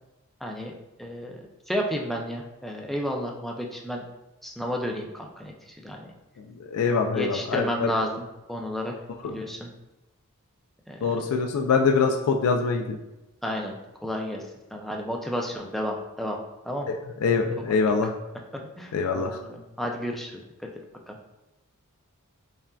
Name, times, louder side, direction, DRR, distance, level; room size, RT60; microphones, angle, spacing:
voice 1, 0.4-0.7 1.0-4.0 4.4-5.5 5.8-6.0 7.1-9.0 9.2-9.7 10.9-11.0 13.4-14.4 14.7-16.4 16.6-16.9 17.6-17.7 18.5-20.4 21.1-21.2, equal, ahead, 0 dB, 0.4 m, -32 dB
voice 2, 6.5-7.9 9.2-9.4 11.0-13.0 16.9-18.1 18.9-19.4, left 5 dB, 80° left, 3 dB, 0.3 m, -24 dB
5.4 x 2.5 x 2.3 m, 0.99 s
head